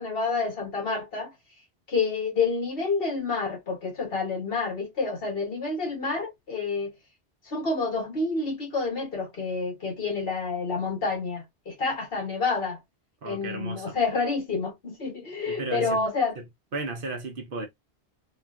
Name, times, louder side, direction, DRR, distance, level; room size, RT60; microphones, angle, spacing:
voice 1, 0.0-1.3 1.9-6.9 7.4-12.8 13.2-16.4, left 4 dB, 60° left, 1.5 m, -28 dB
voice 2, 13.2-14.0 15.5-16.0 16.7-17.7, right 3 dB, 60° right, 0.8 m, -34 dB
3.0 x 2.4 x 2.3 m
omnidirectional pair, 1.1 m